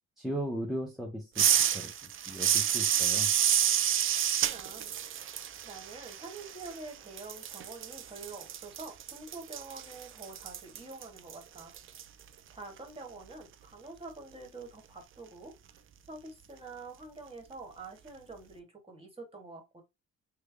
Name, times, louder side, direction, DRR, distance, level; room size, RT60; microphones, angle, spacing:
voice 1, 0.2-3.3, right 1 dB, ahead, 0.7 m, -37 dB
sound 1, 1.4-6.9 7.2-12.0, right 10 dB, 45° right, 0.4 m, -29 dB
voice 2, 4.4-4.9 5.6-11.7 12.5-15.5 16.1-19.8, right 3 dB, 20° right, 1.5 m, -46 dB
3.4 x 2.2 x 3.3 m
cardioid pair, 90°, 30 cm